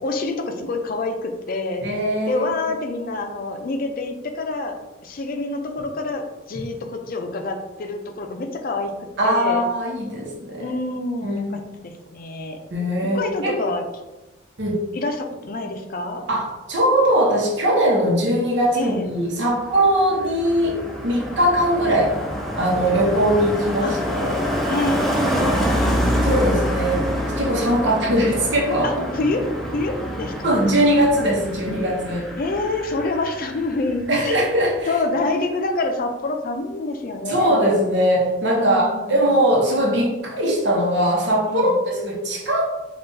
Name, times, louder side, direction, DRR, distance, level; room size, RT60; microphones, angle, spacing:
voice 1, 0.0-1.9 2.3-9.7 10.6-12.6 13.0-13.9 14.9-16.3 18.7-19.1 23.8-24.0 24.7-25.1 25.4-26.0 28.8-30.6 32.4-34.4 34.9-37.8 38.5-39.3 41.5-41.8, left 2 dB, 50° left, 5 dB, 0.5 m, -27 dB
voice 2, 1.8-2.7 9.2-10.8 11.2-11.4 12.7-13.6 14.6-14.8 16.3-20.8 21.0-22.1 22.6-24.5 26.2-28.9 30.4-32.3 34.1-34.9 37.3-42.7, equal, 75° right, -2 dB, 0.9 m, -20 dB
Car passing by, 19.4-34.2 34.5-34.8, equal, ahead, 0.5 m, -26 dB
5.5 x 2.4 x 2.6 m, 1.1 s
head